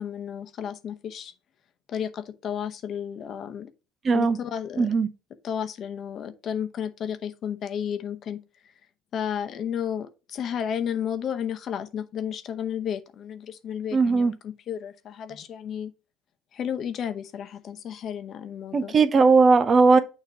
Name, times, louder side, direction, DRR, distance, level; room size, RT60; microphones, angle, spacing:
voice 1, 0.0-1.3 1.9-3.7 4.1-4.9 5.4-8.4 9.1-15.9 16.5-18.9, left 8 dB, 50° left, 0.8 m, -32 dB
voice 2, 4.0-4.4 4.8-5.1 13.9-14.3 18.7-20.0, right 4 dB, 35° right, 0.6 m, -18 dB
6.7 x 3.0 x 5.7 m
hypercardioid pair, 70°, 0 cm